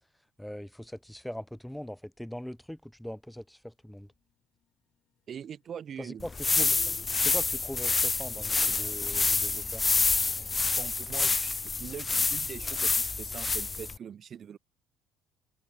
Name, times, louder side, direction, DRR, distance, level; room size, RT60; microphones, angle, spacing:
voice 1, 0.4-4.1 6.0-6.3 6.6-9.8, equal, 5° left, 0.9 m, -41 dB
sound 1, 3.5-13.8, left 10 dB, 55° left, 7.8 m, -70 dB
voice 2, 5.3-6.3 10.8-14.6, right 8 dB, 50° right, 0.8 m, -42 dB
sound 2, 6.2-14.0, left 4 dB, 25° left, 0.5 m, -28 dB
hypercardioid pair, 55°, 0 cm